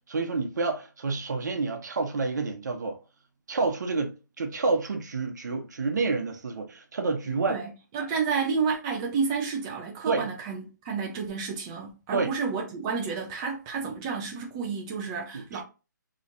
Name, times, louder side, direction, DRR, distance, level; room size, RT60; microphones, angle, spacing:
voice 1, 0.1-3.0 3.5-7.6 10.0-10.3 12.1-12.3 15.3-15.6, right 4 dB, 60° right, 1.0 m, -29 dB
voice 2, 7.3-15.6, right 5 dB, 15° right, 0.5 m, -31 dB
3.9 x 3.0 x 2.6 m
hypercardioid pair, 165°, 11 cm